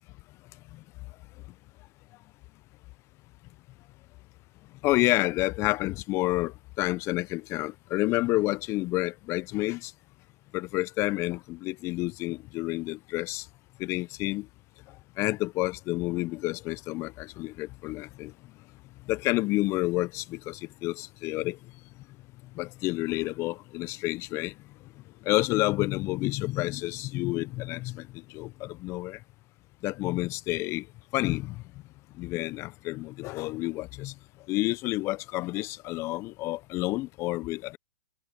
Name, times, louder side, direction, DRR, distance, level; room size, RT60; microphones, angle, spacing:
voice 1, 4.8-9.9 10.5-13.4 13.8-14.5 15.2-18.3 19.1-21.6 22.6-24.5 25.3-28.0 28.3-29.2 29.8-30.8 31.1-31.5 32.2-34.1 34.5-37.8, left 19 dB, 30° left, 0.5 m, -29 dB
hypercardioid pair, 120°, 9 cm